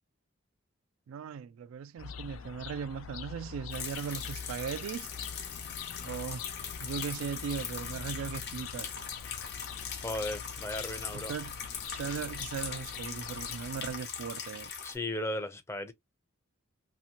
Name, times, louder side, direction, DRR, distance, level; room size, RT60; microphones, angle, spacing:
voice 1, 1.1-5.1 6.0-6.4 6.8-8.9 11.1-11.6 11.9-14.7, right 7 dB, 85° right, 0.3 m, -38 dB
Misc bird calls light traffic, 2.0-14.0, left 7 dB, 85° left, 0.4 m, -44 dB
sound 1, 3.7-14.9, left 7 dB, 55° left, 0.7 m, -41 dB
voice 2, 9.9-11.3 14.8-15.9, left 1 dB, 15° left, 0.5 m, -36 dB
2.7 x 2.5 x 2.8 m
head